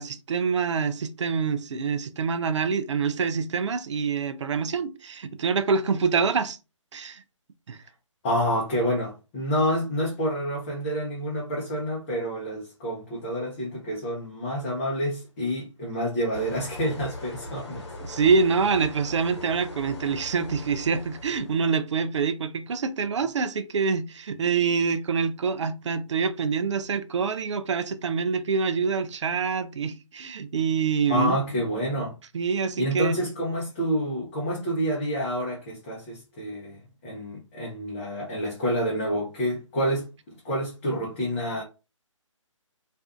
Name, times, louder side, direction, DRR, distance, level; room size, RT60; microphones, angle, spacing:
voice 1, 0.0-6.6 6.9-7.2 7.7-7.8 18.0-31.4 32.3-33.2, right 5 dB, 60° right, 0.4 m, -26 dB
voice 2, 8.2-17.8 31.1-32.1 32.8-40.1 40.4-41.6, equal, 25° left, 0.6 m, -28 dB
sound 1, 16.3-21.7, left 1 dB, 55° left, 1.0 m, -39 dB
2.5 x 2.3 x 2.3 m
figure-of-eight pair, 145°, 17 cm